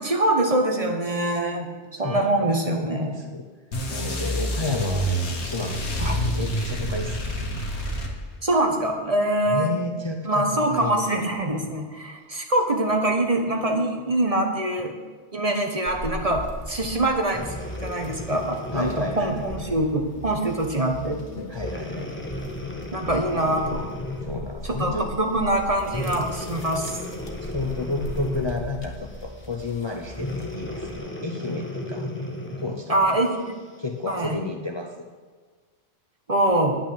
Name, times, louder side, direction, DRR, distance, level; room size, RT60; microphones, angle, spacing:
voice 1, 0.0-1.7 2.0-3.1 6.0-6.1 8.4-9.8 10.2-14.9 15.3-17.5 17.8-21.2 22.9-23.9 24.8-27.0 32.9-33.5 34.1-34.4 36.3-36.8, right 1 dB, 35° right, 3 dB, 1.3 m, -24 dB
voice 2, 2.0-3.4 3.9-7.5 9.5-11.3 11.6-11.7 18.7-19.5 21.5-22.1 24.2-25.1 27.4-32.1 32.6-33.2 33.8-35.1, left 3 dB, 30° left, 3 dB, 0.7 m, -32 dB
sound 1, 3.7-8.5, equal, 80° left, 1.8 m, -27 dB
sound 2, 15.9-31.0, left 1 dB, 60° left, 1.5 m, -39 dB
Breathing, 17.2-19.9 20.5-20.7 21.5-24.4 25.8-28.7 30.1-32.8 33.5-33.6, left 1 dB, 10° left, 1.3 m, -34 dB
10.0 x 5.9 x 8.6 m, 1.4 s
omnidirectional pair, 1.1 m